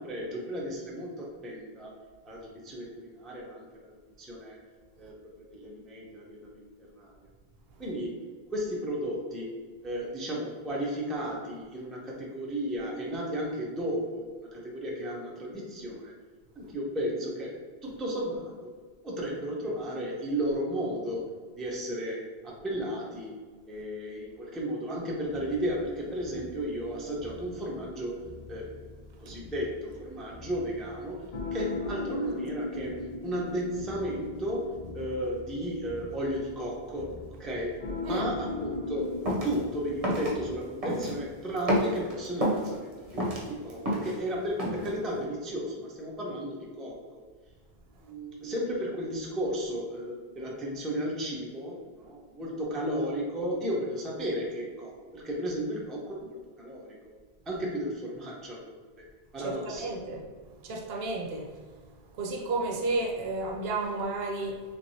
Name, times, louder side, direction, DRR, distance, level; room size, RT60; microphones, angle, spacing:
voice 1, 0.0-2.0 2.2-3.7 4.2-4.6 5.0-5.1 5.5-7.1 7.8-16.1 16.6-17.6 17.8-18.6 19.0-23.3 23.7-31.2 31.5-39.2 39.4-47.2 48.0-57.2 57.5-58.8 59.3-59.9, equal, ahead, -3 dB, 0.4 m, -34 dB
sound 1, 25.3-40.5, left 2 dB, 45° left, 0.6 m, -39 dB
sound 2, 39.3-39.5 40.0-40.3 40.8-41.2 41.6-42.7 43.1-44.2 44.6-44.9, equal, 40° right, 0.7 m, -28 dB
voice 2, 59.4-60.2 60.6-61.5 62.2-64.6, right 2 dB, 75° right, 1 dB, 0.8 m, -32 dB
3.3 x 3.1 x 2.7 m, 1.5 s
omnidirectional pair, 1.1 m